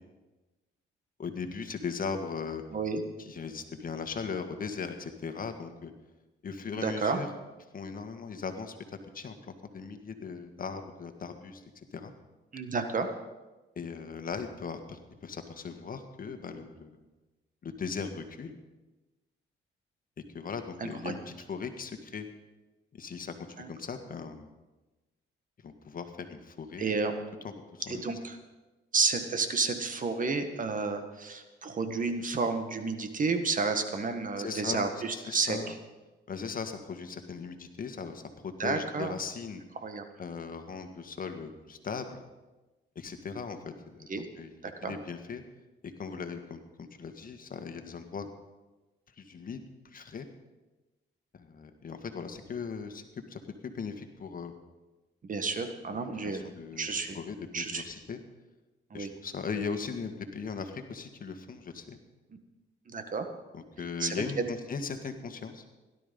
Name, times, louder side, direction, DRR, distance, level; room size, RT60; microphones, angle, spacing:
voice 1, 1.2-2.6 3.2-5.9 6.4-7.3 7.7-8.8 9.1-11.6 11.9-12.1 13.7-17.0 17.6-18.6 20.3-22.3 23.0-23.3 23.7-24.5 25.6-27.0 27.4-28.2 34.4-35.7 36.3-39.6 40.2-42.2 42.9-44.1 44.4-44.5 44.8-45.4 46.0-48.3 49.2-50.3 51.3-53.0 53.3-54.5 56.2-56.9 57.1-58.2 58.9-62.0 63.5-65.6, left 5 dB, 45° left, 7 dB, 1.7 m, -38 dB
voice 2, 6.7-7.2 12.5-13.1 20.8-21.1 23.6-23.7 26.8-27.1 27.9-28.4 28.9-35.7 38.6-39.1 39.8-40.0 44.1-44.3 44.6-44.9 55.2-56.5 56.7-57.2 57.5-57.8 58.9-59.1 62.9-63.3 64.0-64.4, right 4 dB, 40° right, 7 dB, 1.7 m, -31 dB
17.0 x 12.0 x 5.4 m, 1.1 s
cardioid pair, 90°, 20 cm